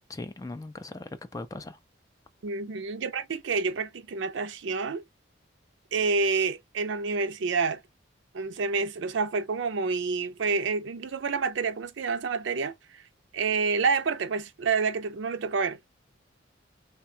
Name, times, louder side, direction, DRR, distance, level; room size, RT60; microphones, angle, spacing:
voice 1, 0.1-1.8, left 2 dB, 15° left, 0.3 m, -39 dB
voice 2, 2.4-5.0 5.9-7.8 8.3-12.7 13.3-15.8, right 4 dB, 75° right, 0.5 m, -28 dB
3.3 x 2.2 x 2.7 m
head